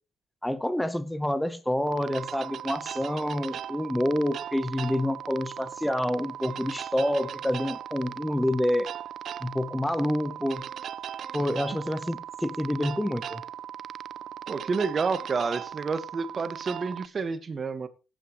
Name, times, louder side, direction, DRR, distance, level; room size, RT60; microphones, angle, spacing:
voice 1, 0.4-8.9 9.4-10.6 11.3-13.4, left 1 dB, 5° left, 1.1 m, -28 dB
sound 1, 1.8-17.1, right 10 dB, 65° right, 0.5 m, -38 dB
voice 2, 14.5-17.9, right 4 dB, 40° right, 1.6 m, -29 dB
15.0 x 10.5 x 3.2 m
cardioid pair, 90°, 0 cm